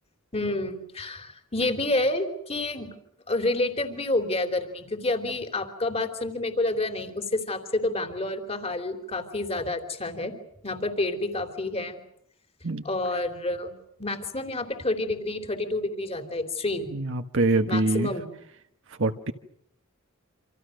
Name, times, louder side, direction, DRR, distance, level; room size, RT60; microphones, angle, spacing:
voice 1, 0.3-2.9 3.3-10.3 10.6-12.0 12.8-13.7 14.0-16.9 17.7-18.2, left 2 dB, 30° left, 7 dB, 3.3 m, -29 dB
voice 2, 16.9-18.1 18.9-19.3, right 2 dB, 60° right, 6 dB, 1.3 m, -25 dB
27.5 x 27.0 x 6.5 m, 0.71 s
head